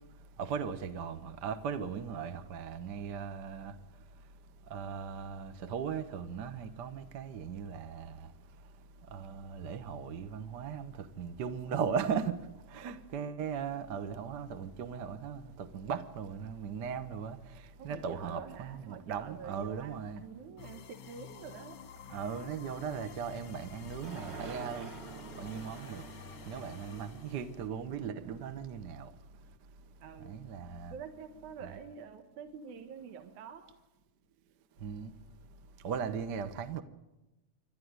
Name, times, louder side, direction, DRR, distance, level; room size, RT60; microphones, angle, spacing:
voice 1, 0.4-3.7 4.7-8.2 9.1-12.4 12.7-17.4 17.8-20.2 22.1-24.9 25.4-26.0 26.5-29.1 30.3-30.9 34.8-35.1 35.8-36.8, right 6 dB, 55° right, 1.1 m, -38 dB
voice 2, 17.8-21.8 30.0-30.4 30.9-33.7, right 6 dB, 75° right, 2.8 m, -47 dB
sound 1, 20.6-27.7, left 7 dB, 50° left, 1.3 m, -50 dB
sound 2, 24.0-28.4, right 4 dB, 40° right, 2.7 m, -47 dB
28.0 x 12.5 x 9.5 m
omnidirectional pair, 3.5 m